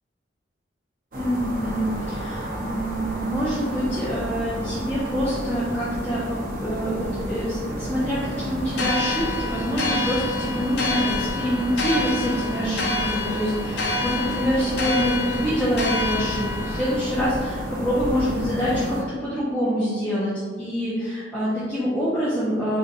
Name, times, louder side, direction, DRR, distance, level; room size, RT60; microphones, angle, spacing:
voice 1, 1.1-22.8, equal, 10° left, -10 dB, 0.4 m, -26 dB
sound 1, 1.1-19.0, right 1 dB, 45° right, 0.5 m, -31 dB
sound 2, 8.7-16.9, left 3 dB, 60° left, 0.5 m, -28 dB
2.6 x 2.2 x 3.9 m, 1.5 s
head